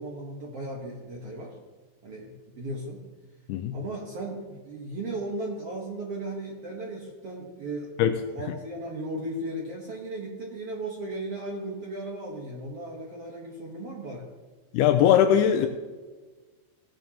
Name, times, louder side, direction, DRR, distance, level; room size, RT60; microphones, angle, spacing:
voice 1, 0.0-1.5 2.0-3.0 3.7-7.9 8.3-14.3, right 1 dB, 80° right, -2 dB, 1.3 m, -36 dB
voice 2, 14.7-15.7, left 10 dB, 80° left, 7 dB, 2.4 m, -20 dB
17.0 x 9.2 x 2.9 m, 1.4 s
omnidirectional pair, 4.8 m